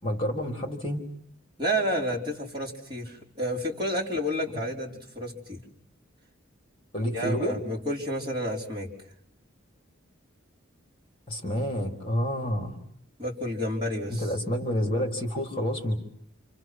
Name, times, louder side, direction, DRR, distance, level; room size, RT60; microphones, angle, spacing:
voice 1, 0.0-1.1 6.9-7.6 11.3-12.8 14.1-15.9, equal, 25° left, 2 dB, 4.0 m, -29 dB
voice 2, 1.6-5.6 7.1-8.9 13.2-14.2, equal, 20° right, -3 dB, 5.0 m, -30 dB
29.5 x 28.5 x 6.2 m, 0.68 s
head